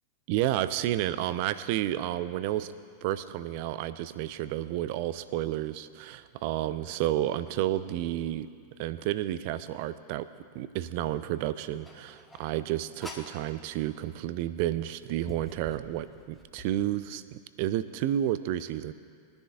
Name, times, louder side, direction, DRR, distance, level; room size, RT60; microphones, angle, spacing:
voice 1, 0.3-2.7 3.0-8.5 8.8-10.3 10.5-18.9, right 13 dB, 45° right, 14 dB, 0.5 m, -31 dB
sound 1, 11.8-13.4 14.4-14.5 15.0-16.7, left 1 dB, 5° left, 1.5 m, -47 dB
21.5 x 10.5 x 2.6 m, 2.2 s
figure-of-eight pair, 90°, 0 cm